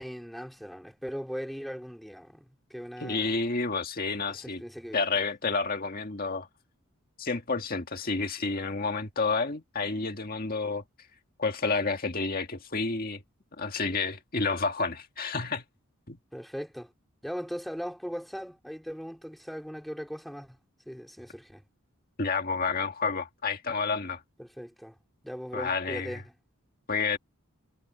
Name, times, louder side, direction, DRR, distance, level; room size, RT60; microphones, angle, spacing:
voice 1, 0.0-3.3 4.3-5.0 16.3-16.9 17.2-20.6 20.9-21.6 24.4-25.0 25.2-26.3, equal, ahead, 3.6 m, -39 dB
voice 2, 3.0-4.6 4.9-6.5 7.2-10.8 11.4-13.2 13.6-15.6 16.1-16.2 22.2-24.2 25.5-26.2 26.9-27.2, left 4 dB, 45° left, 1.9 m, -30 dB
head